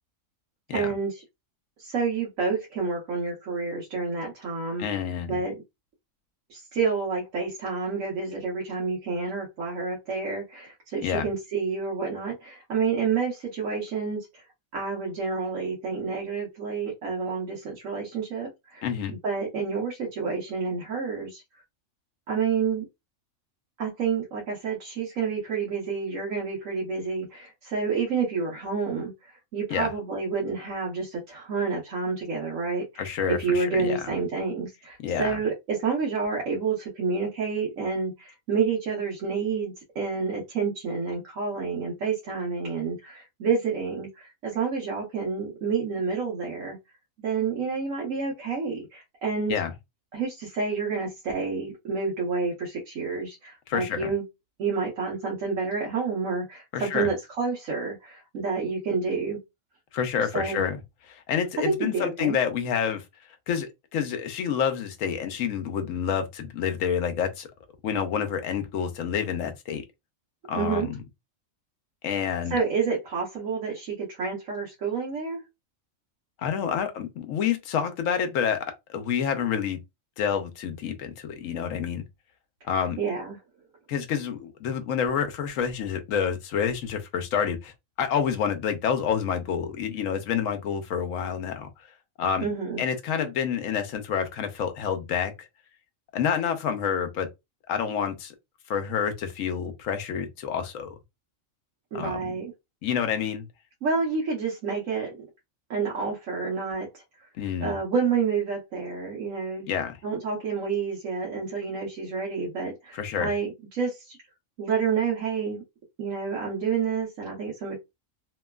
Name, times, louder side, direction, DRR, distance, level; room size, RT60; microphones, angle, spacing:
voice 1, 0.7-1.2 1.8-4.8 5.3-5.5 6.5-14.4 14.7-21.4 22.3-22.9 23.8-46.8 47.2-49.6 50.1-54.2 54.6-59.4 60.2-60.6 61.6-62.4 70.5-70.9 72.5-75.4 83.0-83.4 92.4-92.8 101.9-102.5 103.8-105.1 105.7-107.3 107.6-109.7 110.0-114.2 114.6-115.6 116.0-117.8, right 5 dB, 75° right, 1.2 m, -29 dB
voice 2, 4.8-5.4 11.0-11.3 18.8-19.1 29.7-29.9 33.0-34.0 35.0-35.4 49.5-49.7 53.7-54.1 56.7-57.1 59.9-60.8 61.1-63.0 63.5-67.5 67.8-69.8 70.5-71.0 72.0-72.6 76.4-78.6 78.9-79.8 80.2-82.0 82.7-83.0 83.9-87.7 88.0-91.7 92.2-92.5 92.8-95.5 96.1-97.3 97.7-98.3 98.7-101.0 101.9-102.2 102.8-103.5 107.4-107.8 109.7-110.0 112.9-113.3, left 7 dB, 75° left, 1.0 m, -28 dB
3.0 x 2.2 x 2.2 m
omnidirectional pair, 1.4 m